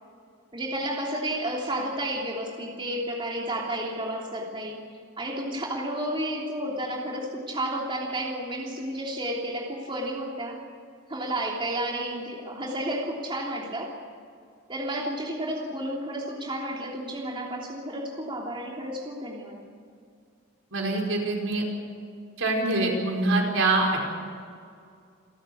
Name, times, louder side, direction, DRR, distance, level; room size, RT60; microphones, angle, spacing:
voice 1, 0.5-4.8 5.2-10.6 11.1-13.9 14.7-19.6, right 1 dB, 25° right, -2 dB, 3.1 m, -31 dB
voice 2, 20.7-21.6 22.4-24.1, right 2 dB, 70° right, 0 dB, 4.9 m, -24 dB
29.0 x 13.0 x 8.6 m, 2.3 s
head